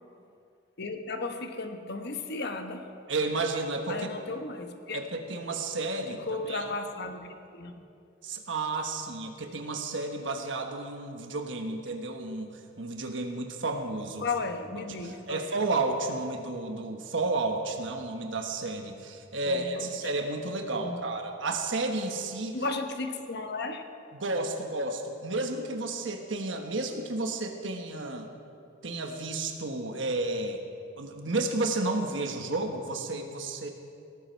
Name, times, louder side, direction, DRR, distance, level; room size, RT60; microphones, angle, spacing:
voice 1, 0.8-2.9 3.9-5.0 6.1-7.7 14.2-15.4 19.4-19.9 20.8-21.2 22.5-23.8, left 3 dB, 60° left, 6 dB, 1.2 m, -35 dB
voice 2, 3.1-4.1 4.9-6.7 8.2-14.3 15.0-22.6 24.1-28.3 28.8-30.6 31.0-33.7, right 2 dB, 70° right, 4 dB, 1.3 m, -32 dB
18.0 x 13.5 x 4.6 m, 2.5 s
head